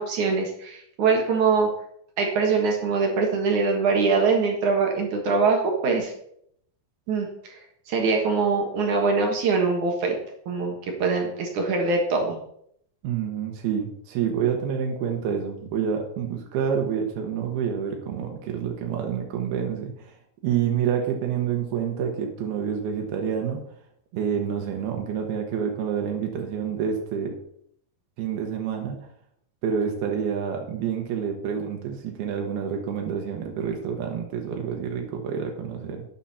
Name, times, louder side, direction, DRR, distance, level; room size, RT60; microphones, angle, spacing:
voice 1, 0.0-1.7 2.2-6.1 7.1-7.6 7.9-10.2 10.5-12.4, right 4 dB, 60° right, 1 dB, 2.7 m, -23 dB
voice 2, 13.0-20.1 20.4-23.6 24.1-27.3 28.2-29.0 29.6-36.1, right 7 dB, 85° right, 2 dB, 3.2 m, -28 dB
12.0 x 9.1 x 4.2 m, 0.70 s
omnidirectional pair, 4.4 m